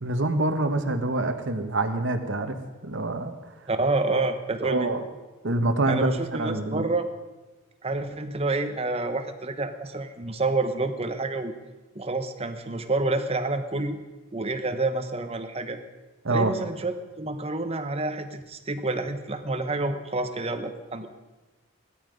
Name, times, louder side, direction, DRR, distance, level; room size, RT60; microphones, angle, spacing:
voice 1, 0.0-2.6 2.8-3.3 4.1-4.2 4.6-5.0 5.4-6.1 6.4-6.9 16.2-16.5, right 2 dB, 60° right, 7 dB, 1.3 m, -25 dB
voice 2, 3.7-4.9 5.9-7.1 7.8-11.5 11.9-14.0 14.3-15.8 16.3-21.1, right 2 dB, 30° right, 7 dB, 1.1 m, -28 dB
17.0 x 13.0 x 5.3 m, 1.2 s
head